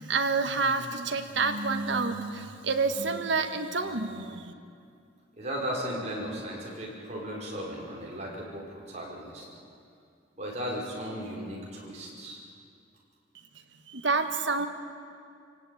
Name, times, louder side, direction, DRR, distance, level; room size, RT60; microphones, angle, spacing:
voice 1, 0.0-4.5 13.9-14.7, right 4 dB, 70° right, 7 dB, 1.7 m, -28 dB
voice 2, 5.4-9.5 10.4-12.4, equal, 35° right, -3 dB, 5.2 m, -36 dB
28.5 x 17.5 x 9.4 m, 2.4 s
head